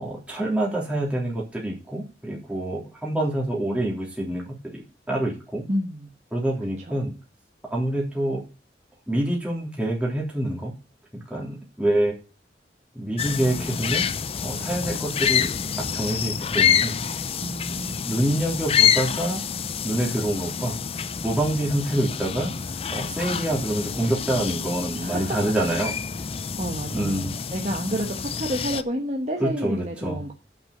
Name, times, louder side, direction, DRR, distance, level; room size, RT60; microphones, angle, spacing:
voice 1, 0.0-4.8 5.1-5.6 6.3-7.1 7.7-8.4 9.1-10.7 11.1-12.1 12.9-14.1 14.4-15.5 15.8-17.0 18.0-19.4 19.8-25.9 26.9-27.3 29.4-30.2, right 1 dB, 5° right, 3.3 m, -26 dB
voice 2, 5.7-6.1 6.9-7.0 17.4-18.1 24.9-25.5 26.4-30.3, equal, 40° right, 1.2 m, -30 dB
sound 1, 13.2-28.8, left 8 dB, 35° left, 0.5 m, -27 dB
9.6 x 6.2 x 6.6 m
head